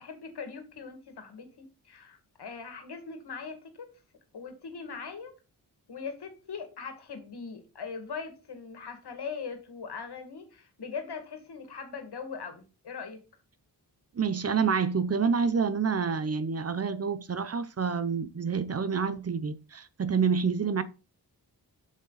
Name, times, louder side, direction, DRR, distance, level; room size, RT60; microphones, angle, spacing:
voice 1, 0.0-3.9 4.3-5.3 5.9-13.2, left 5 dB, 80° left, 2.2 m, -40 dB
voice 2, 14.1-20.8, right 5 dB, 40° right, 0.6 m, -28 dB
8.1 x 6.2 x 4.0 m
wide cardioid pair, 120°, 39 cm